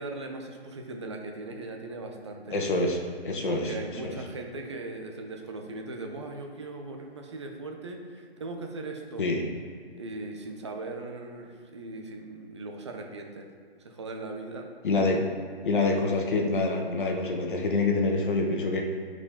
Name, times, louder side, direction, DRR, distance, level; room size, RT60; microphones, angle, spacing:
voice 1, 0.0-2.6 3.5-9.2 10.0-13.5 13.8-14.7, right 2 dB, 25° right, 3 dB, 0.8 m, -39 dB
voice 2, 2.5-3.0 3.2-3.7 4.0-4.2 9.2-9.4 14.8-15.3 15.6-18.8, left 3 dB, 50° left, 1 dB, 1.5 m, -26 dB
11.0 x 5.0 x 3.7 m, 2.2 s
hypercardioid pair, 165°, 32 cm